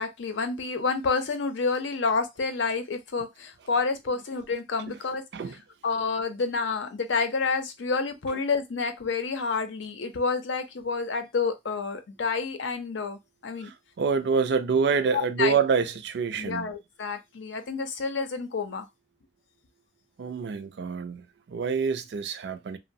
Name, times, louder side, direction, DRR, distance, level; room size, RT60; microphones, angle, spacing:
voice 1, 0.0-5.2 5.8-13.7 15.1-15.6 16.4-18.9, left 4 dB, 85° left, 0.5 m, -29 dB
voice 2, 13.6-16.7 20.2-22.8, right 5 dB, 65° right, 0.3 m, -27 dB
2.9 x 2.1 x 2.6 m
head